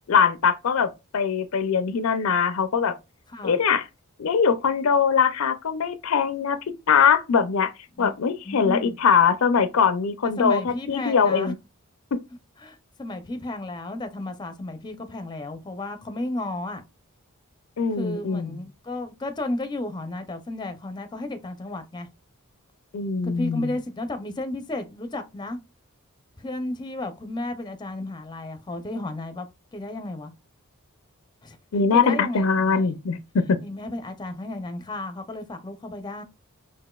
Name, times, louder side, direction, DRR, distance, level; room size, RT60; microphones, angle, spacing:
voice 1, 0.1-2.9 3.4-3.8 4.2-6.6 6.9-7.7 8.0-11.6 12.1-12.2 17.8-18.6 22.9-23.7 31.7-33.6, left 6 dB, 70° left, 0.5 m, -22 dB
voice 2, 8.4-9.0 10.2-11.5 12.6-16.8 17.9-22.1 23.2-25.6 26.4-29.5 29.7-30.3 31.4-31.6 31.9-32.9 33.6-36.2, left 2 dB, 20° left, 0.5 m, -33 dB
5.9 x 2.5 x 2.3 m
head